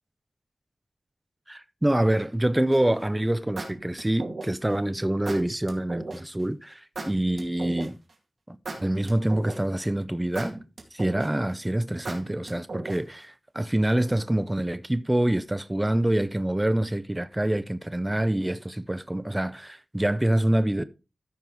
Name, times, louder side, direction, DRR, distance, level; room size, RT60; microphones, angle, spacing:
voice 1, 1.5-8.0 8.5-10.6 10.9-20.8, right 1 dB, 15° right, 0.6 m, -26 dB
sound 1, 2.7-3.0 3.6-4.7 5.2-6.2 6.9-8.1 8.6-9.8 10.3-11.5 12.0-13.2, right 3 dB, 65° right, 2.1 m, -36 dB
14.0 x 5.4 x 3.1 m
wide cardioid pair, 85°, 0 cm